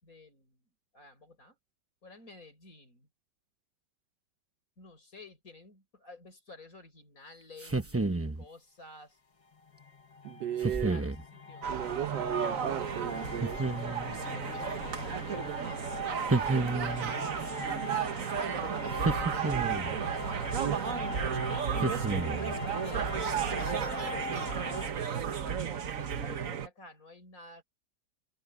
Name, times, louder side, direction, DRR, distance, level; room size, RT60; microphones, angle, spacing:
voice 1, 0.0-0.7 0.9-1.6 2.0-3.1 4.8-9.2 10.5-11.7 13.2-14.0 14.3-17.8 20.5-21.7 22.1-27.6, left 2 dB, 50° left, 6.5 m, -52 dB
sound 1, 7.6-8.4 10.6-11.2 13.4-14.2 16.3-17.2 19.0-20.0 21.8-22.6, right 3 dB, 15° right, 0.4 m, -31 dB
sound 2, 9.5-24.9, left 3 dB, 30° left, 0.6 m, -41 dB
voice 2, 10.2-11.0 11.7-13.6 20.6-20.8, right 11 dB, 85° right, 1.4 m, -35 dB
sound 3, 11.6-26.7, right 7 dB, 55° right, 1.5 m, -33 dB
omnidirectional pair, 1.8 m